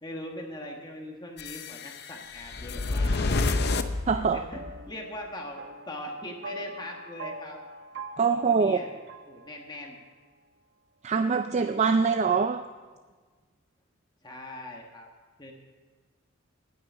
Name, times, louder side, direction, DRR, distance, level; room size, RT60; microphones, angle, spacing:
voice 1, 0.0-3.6 4.1-5.6 5.9-7.6 8.3-9.0 9.3-10.0 14.2-15.1 15.4-15.5, left 1 dB, 20° left, 1 dB, 1.3 m, -41 dB
sound 1, 1.4-4.8, left 3 dB, 50° left, 0.6 m, -29 dB
voice 2, 4.1-4.4 8.2-8.8 11.0-12.6, right 5 dB, 30° right, 8 dB, 0.3 m, -24 dB
sound 2, 4.2-10.0, right 2 dB, 55° right, 1.0 m, -45 dB
10.0 x 9.5 x 8.0 m, 1.4 s
head